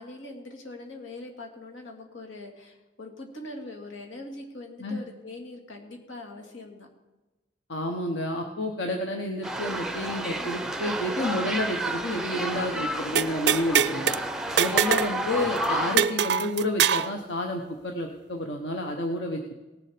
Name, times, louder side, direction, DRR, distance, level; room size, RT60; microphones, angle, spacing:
voice 1, 0.0-6.9, left 2 dB, 90° left, 1 dB, 2.1 m, -42 dB
voice 2, 7.7-14.1 14.6-19.6, left 1 dB, 65° left, 3 dB, 1.0 m, -30 dB
sound 1, 9.4-16.0, right 1 dB, 5° right, 0.5 m, -31 dB
sound 2, 13.2-14.2 14.6-15.1 15.4-15.5 16.0-17.1, right 8 dB, 60° right, 0.4 m, -23 dB
18.0 x 7.3 x 5.0 m, 1.1 s
head